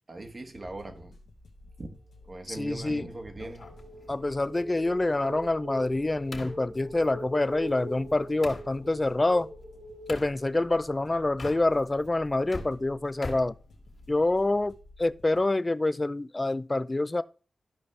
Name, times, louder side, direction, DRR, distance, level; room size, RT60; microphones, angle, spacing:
voice 1, 0.1-1.2 1.8-2.0 2.3-3.7, right 2 dB, 45° right, 1.3 m, -40 dB
sound 1, 0.6-15.4, left 2 dB, 90° left, 1.1 m, -54 dB
sound 2, 2.3-11.2, right 1 dB, 85° right, 3.8 m, -43 dB
voice 2, 2.5-3.0 4.1-9.5 10.1-13.5 14.1-14.7 15.0-17.2, left 2 dB, 30° left, 0.4 m, -26 dB
sound 3, 3.4-8.7 10.1-10.3 11.3-12.0 12.3-14.3, left 2 dB, 60° left, 1.9 m, -44 dB
12.0 x 5.2 x 3.3 m
cardioid pair, 45°, 0 cm